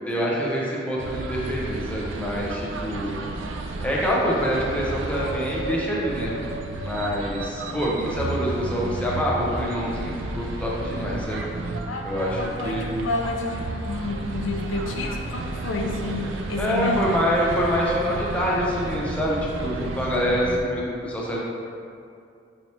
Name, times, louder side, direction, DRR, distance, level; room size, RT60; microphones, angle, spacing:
voice 1, 0.1-3.2 3.8-6.4 6.8-11.4 12.0-12.9 16.6-21.4, equal, 5° left, -5 dB, 0.6 m, -26 dB
sound 1, 1.0-20.6, right 2 dB, 80° right, 0.3 m, -32 dB
voice 2, 12.4-17.2, left 2 dB, 90° left, 1 dB, 0.5 m, -30 dB
4.2 x 3.2 x 2.8 m, 2.4 s
head